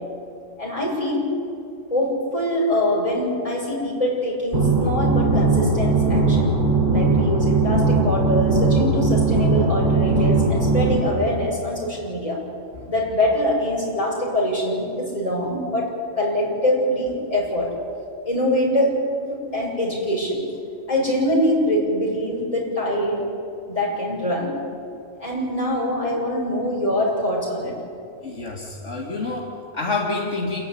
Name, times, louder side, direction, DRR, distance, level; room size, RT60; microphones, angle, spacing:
voice 1, 0.6-1.3 1.9-6.5 6.9-12.4 12.7-17.8 18.2-20.4 20.9-23.4 23.7-24.6 25.2-27.8, left 1 dB, 25° left, -4 dB, 6.7 m, -24 dB
sound 1, 4.5-11.0, right 3 dB, 50° right, 4.1 m, -19 dB
voice 2, 28.2-30.6, left 3 dB, 65° left, -2 dB, 2.3 m, -28 dB
28.0 x 11.0 x 9.7 m, 2.4 s
omnidirectional pair, 1.3 m